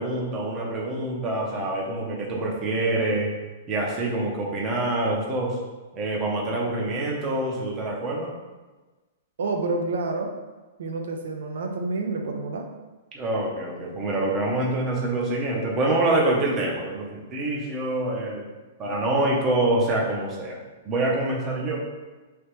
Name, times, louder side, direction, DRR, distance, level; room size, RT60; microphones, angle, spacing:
voice 1, 0.0-3.3 3.7-5.6 5.9-8.3 13.1-18.4 18.8-20.6 20.9-21.8, right 2 dB, 25° right, -2 dB, 0.6 m, -26 dB
voice 2, 9.4-10.3 10.8-12.7, right 3 dB, 80° right, 3 dB, 0.4 m, -28 dB
3.3 x 2.8 x 3.0 m, 1.2 s
hypercardioid pair, 160°, 0 cm